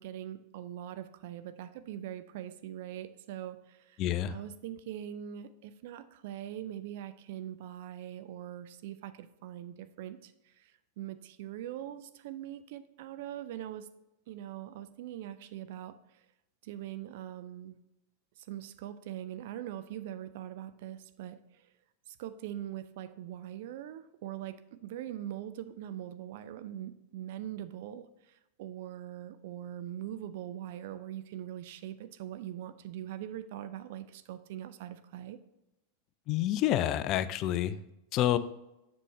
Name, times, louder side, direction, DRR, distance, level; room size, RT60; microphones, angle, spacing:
voice 1, 0.0-13.9 14.3-16.2 16.6-17.8 18.4-21.7 22.1-35.4, right 11 dB, 50° right, 12 dB, 0.4 m, -42 dB
voice 2, 4.0-4.3 36.3-37.8 38.1-38.4, left 12 dB, 35° left, 14 dB, 0.4 m, -28 dB
7.5 x 6.3 x 3.1 m, 0.91 s
figure-of-eight pair, 90°, 0 cm